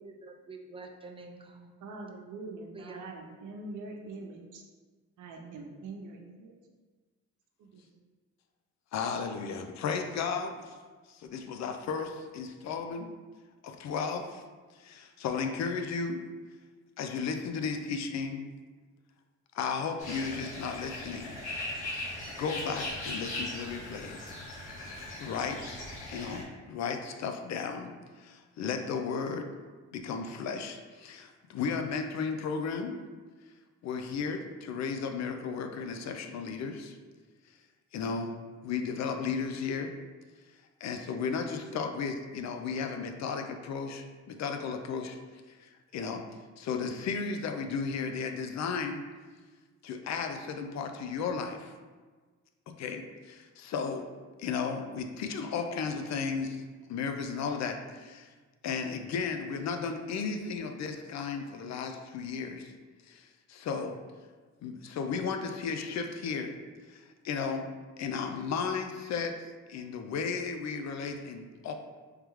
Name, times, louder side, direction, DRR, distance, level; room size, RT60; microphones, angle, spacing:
voice 1, 0.0-1.7 2.7-3.2, right 3 dB, 20° right, 2 dB, 0.5 m, -47 dB
voice 2, 1.8-4.6 5.2-6.5 7.6-7.8, right 3 dB, 80° right, 2 dB, 0.7 m, -43 dB
voice 3, 8.9-10.8 11.1-13.1 13.6-14.4 14.7-16.3 17.0-18.5 19.5-21.4 22.4-24.2 25.2-25.8 26.1-29.5 29.9-32.9 33.8-37.0 37.9-38.4 38.6-39.9 40.8-45.2 45.5-46.2 46.6-49.0 49.8-51.7 52.8-54.1 54.4-58.3 58.6-62.7 63.0-64.0 64.6-66.5 66.9-67.7 68.0-71.7, left 5 dB, 65° left, 6 dB, 0.5 m, -34 dB
sound 1, 20.0-26.4, left 1 dB, 90° left, 1.3 m, -39 dB
3.5 x 3.2 x 3.1 m, 1.4 s
cardioid pair, 90°, 30 cm